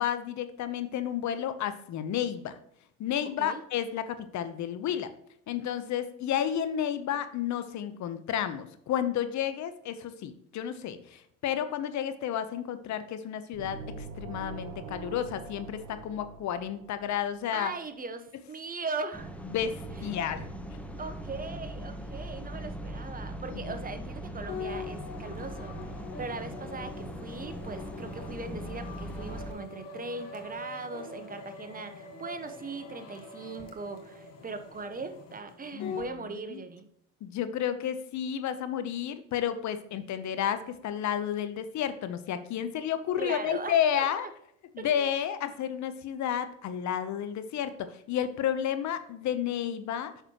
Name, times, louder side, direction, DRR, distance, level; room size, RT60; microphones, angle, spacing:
voice 1, 0.0-2.6 3.0-5.1 5.5-17.7 19.5-20.5 23.5-23.8 35.7-36.0 36.5-36.6 37.2-44.3 44.7-50.1, left 9 dB, 60° left, 11 dB, 0.8 m, -31 dB
sound 1, 13.5-17.3, right 4 dB, 85° right, 1.0 m, -43 dB
voice 2, 17.5-19.3 19.9-20.3 21.0-36.9 43.2-44.1 44.8-45.1, right 3 dB, 25° right, 9 dB, 0.9 m, -39 dB
sound 2, 19.1-29.5, right 1 dB, 5° left, 1.0 m, -40 dB
sound 3, 24.5-36.1, left 4 dB, 80° left, 1.6 m, -43 dB
6.7 x 6.1 x 2.9 m, 0.70 s
supercardioid pair, 85°, 33 cm